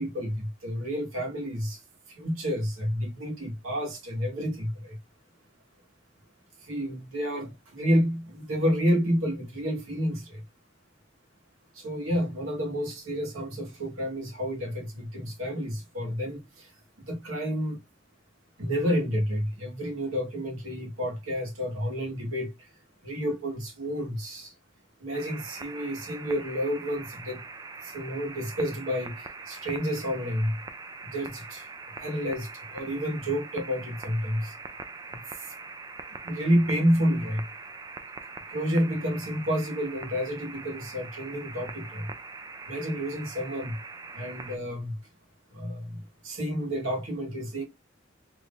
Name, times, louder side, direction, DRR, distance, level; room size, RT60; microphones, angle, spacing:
voice 1, 0.0-1.8 2.1-5.0 6.6-10.4 11.7-16.7 17.0-17.8 18.6-22.7 23.0-24.5 25.0-27.4 27.8-30.6 31.0-31.7 32.0-34.5 35.1-35.5 36.2-37.4 38.5-42.1 42.7-43.8 44.1-45.0 45.5-47.6, equal, 90° right, 1.5 m, -30 dB
sound 1, 25.1-44.6, right 4 dB, 20° right, 0.3 m, -43 dB
3.1 x 2.5 x 3.5 m
head